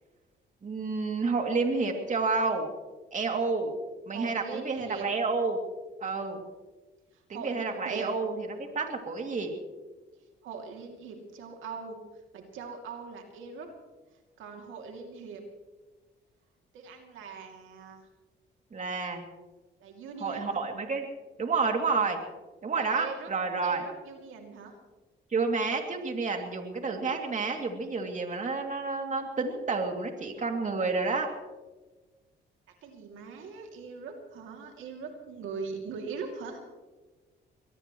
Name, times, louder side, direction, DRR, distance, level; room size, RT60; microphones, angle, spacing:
voice 1, 0.6-2.7 3.1-3.7 4.1-5.6 6.0-6.4 7.3-9.5 18.7-19.2 20.2-21.1 21.4-22.2 22.6-23.8 25.3-31.3, right 4 dB, 40° right, 3 dB, 2.8 m, -30 dB
voice 2, 4.1-5.1 6.0-6.4 7.1-8.1 10.4-12.0 12.3-13.7 14.4-15.4 16.7-18.1 19.8-20.6 22.7-23.3 23.6-24.7 32.8-36.6, right 5 dB, 85° right, 2 dB, 2.7 m, -41 dB
23.5 x 19.0 x 3.2 m, 1.2 s
cardioid pair, 90°, 20 cm